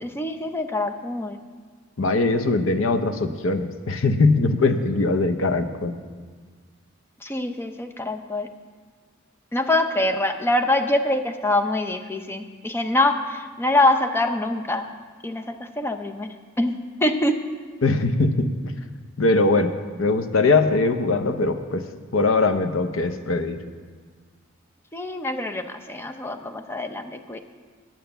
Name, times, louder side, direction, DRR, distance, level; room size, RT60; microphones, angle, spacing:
voice 1, 0.0-1.4 7.2-8.5 9.5-14.9 15.2-16.3 16.6-17.4 24.9-27.4, left 1 dB, 10° left, 6 dB, 0.6 m, -24 dB
voice 2, 2.0-5.9 17.8-18.5 19.2-19.7 20.0-21.8 22.1-23.6, left 3 dB, 70° left, 9 dB, 0.7 m, -21 dB
9.0 x 9.0 x 6.9 m, 1.6 s
head